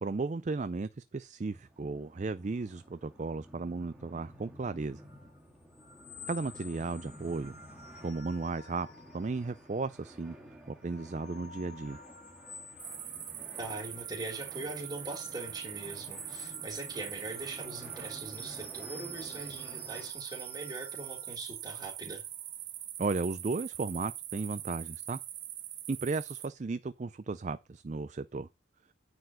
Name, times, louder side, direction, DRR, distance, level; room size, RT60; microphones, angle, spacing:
voice 1, 0.0-5.0 6.3-7.6 8.0-8.9 9.1-10.4 10.7-12.0 23.0-25.2 25.9-28.5, right 3 dB, 35° right, 0.4 m, -35 dB
sound 1, 1.5-20.1, equal, 5° right, 1.7 m, -53 dB
sound 2, 4.9-10.1 10.5-22.8, left 4 dB, 50° left, 1.6 m, -53 dB
sound 3, 12.8-26.5, right 12 dB, 60° right, 1.4 m, -42 dB
voice 2, 13.6-22.2, right 2 dB, 20° right, 3.4 m, -41 dB
9.5 x 4.6 x 6.3 m
head